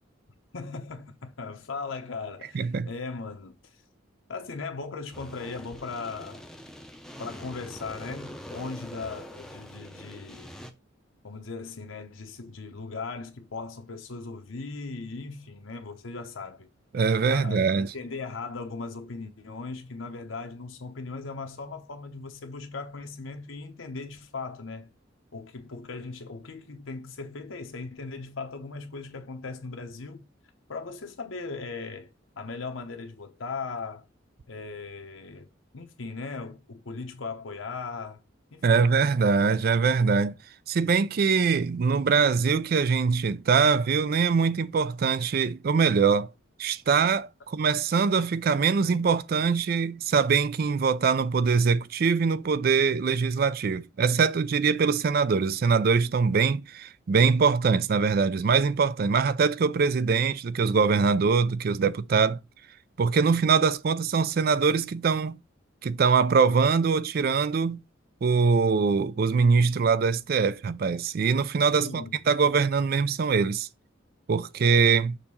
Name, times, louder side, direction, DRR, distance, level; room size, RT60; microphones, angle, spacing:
voice 1, 0.5-3.8 4.3-6.4 7.2-10.5 11.2-16.7 17.3-24.9 25.3-30.2 30.7-34.0 34.5-35.5 35.7-38.2 38.5-38.8 71.8-72.2, left 4 dB, 80° left, 0.9 m, -38 dB
voice 2, 2.5-2.9 16.9-17.9 38.6-40.3 40.7-46.3 46.6-62.4 63.0-65.4 65.8-67.8 68.2-73.7 74.3-75.2, right 5 dB, 50° right, 0.4 m, -23 dB
sound 1, 5.1-10.7, equal, 5° left, 0.6 m, -44 dB
6.6 x 2.8 x 5.4 m
head